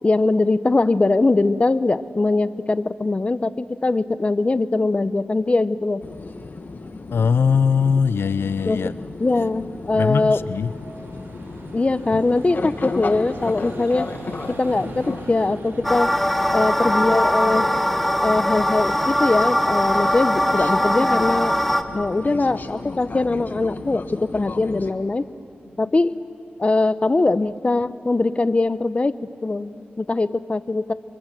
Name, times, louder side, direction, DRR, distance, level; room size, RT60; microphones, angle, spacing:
voice 1, 0.0-6.0 8.6-8.9 9.2-10.4 11.7-14.1 14.6-16.1 16.5-17.7 18.2-21.6 21.9-25.2 25.8-26.3 26.6-30.9, left 3 dB, 35° left, 14 dB, 0.7 m, -21 dB
sound 1, 6.0-24.9, left 3 dB, 55° left, 1.4 m, -35 dB
voice 2, 7.1-8.9 9.9-10.7 12.1-12.2 16.5-16.8 25.8-25.9, left 6 dB, 85° left, 15 dB, 0.5 m, -21 dB
Vehicle, 7.9-22.4, right 2 dB, 80° right, 2.8 m, -44 dB
sound 2, 15.8-21.8, equal, 5° left, 1.3 m, -21 dB
29.5 x 24.0 x 7.5 m, 2.7 s
wide cardioid pair, 70°, 4 cm